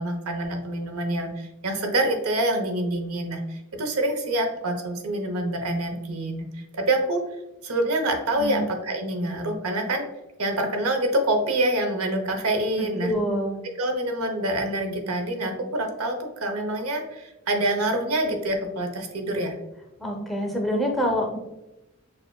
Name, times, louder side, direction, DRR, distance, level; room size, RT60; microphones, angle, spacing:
voice 1, 0.0-6.4 6.7-7.2 7.6-10.1 10.4-13.1 13.8-19.6, right 1 dB, 90° right, 4 dB, 0.8 m, -26 dB
voice 2, 12.8-13.6 20.0-21.4, equal, ahead, 1 dB, 0.5 m, -26 dB
6.7 x 2.5 x 2.2 m, 0.96 s
head